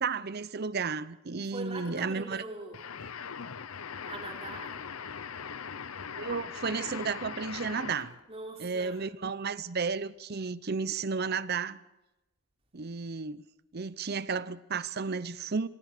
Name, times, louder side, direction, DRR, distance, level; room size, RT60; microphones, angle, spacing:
voice 1, 0.0-2.4 6.2-8.1 8.6-11.8 12.7-13.5 13.7-15.7, right 5 dB, 45° right, 0.7 m, -33 dB
voice 2, 1.5-2.9 4.0-4.8 8.3-9.0, right 2 dB, 30° right, 4.0 m, -42 dB
sound 1, 2.7-8.2, left 6 dB, 85° left, 0.8 m, -40 dB
27.0 x 15.5 x 6.6 m
head